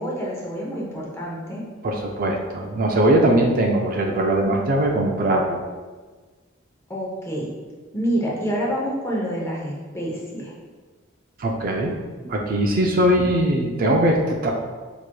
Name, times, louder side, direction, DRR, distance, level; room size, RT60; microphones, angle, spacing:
voice 1, 0.0-1.6 6.9-7.5 7.9-10.5, equal, 15° left, -4 dB, 0.6 m, -27 dB
voice 2, 1.8-5.6 11.4-12.0 12.2-14.5, right 1 dB, 45° right, 1 dB, 0.4 m, -20 dB
4.7 x 2.9 x 2.2 m, 1.4 s
head